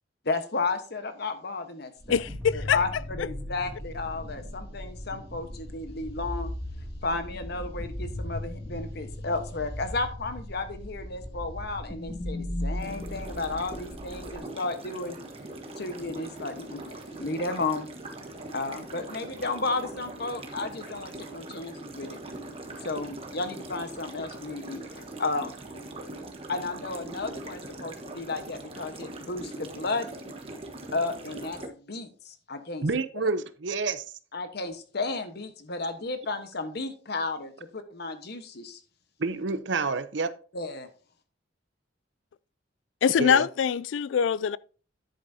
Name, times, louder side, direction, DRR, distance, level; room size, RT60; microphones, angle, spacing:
voice 1, 0.2-2.2 2.7-2.9 3.2-6.5 7.0-15.2 15.8-17.9 18.5-22.2 22.8-25.5 26.5-30.1 30.9-32.9 33.2-33.3 34.3-38.8 40.5-40.9, left 3 dB, 60° left, 1.2 m, -33 dB
sound 1, 2.0-14.4, left 1 dB, 10° right, 2.4 m, -37 dB
voice 2, 2.1-2.8 43.0-44.6, left 7 dB, 75° left, 0.3 m, -23 dB
sound 2, 12.8-31.7, right 2 dB, 30° right, 1.3 m, -41 dB
voice 3, 32.8-34.0 39.2-40.3 43.2-43.5, right 4 dB, 70° right, 0.7 m, -28 dB
10.5 x 8.2 x 2.8 m
head